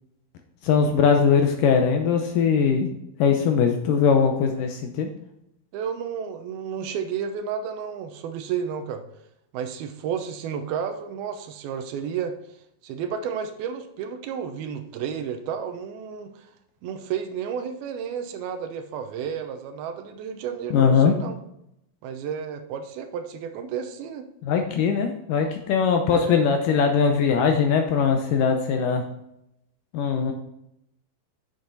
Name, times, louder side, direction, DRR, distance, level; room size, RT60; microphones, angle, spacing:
voice 1, 0.6-2.9 3.2-5.1 20.7-21.1 24.4-29.0 29.9-30.3, left 6 dB, 80° left, 4 dB, 2.1 m, -20 dB
voice 2, 5.7-9.0 9.5-12.4 12.8-16.5 16.8-21.4 22.0-24.3 26.1-26.3, right 7 dB, 85° right, 7 dB, 2.6 m, -32 dB
7.8 x 7.1 x 3.9 m, 0.80 s
omnidirectional pair, 4.5 m